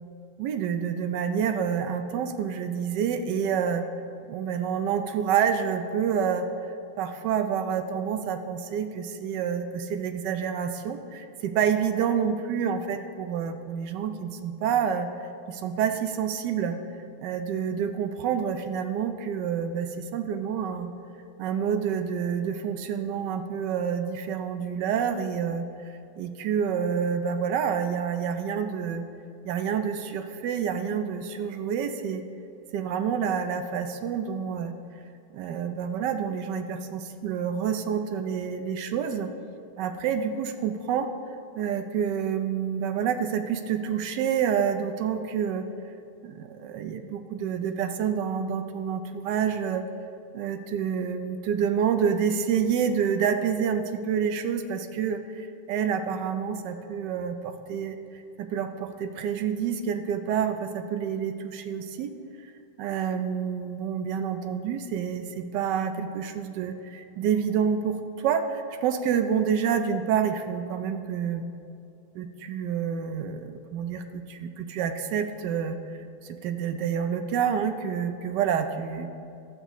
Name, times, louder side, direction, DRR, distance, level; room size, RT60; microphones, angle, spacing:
voice 1, 0.4-3.8 4.3-6.5 7.0-15.1 15.5-16.8 17.2-20.9 21.4-29.0 29.4-32.2 32.7-34.7 35.3-39.3 39.8-41.1 41.6-45.7 46.2-49.8 50.3-62.1 62.4-62.5 62.8-71.5 72.2-75.8 76.2-79.1, right 7 dB, 75° right, 7 dB, 1.0 m, -28 dB
13.0 x 8.2 x 3.0 m, 2.7 s
omnidirectional pair, 2.2 m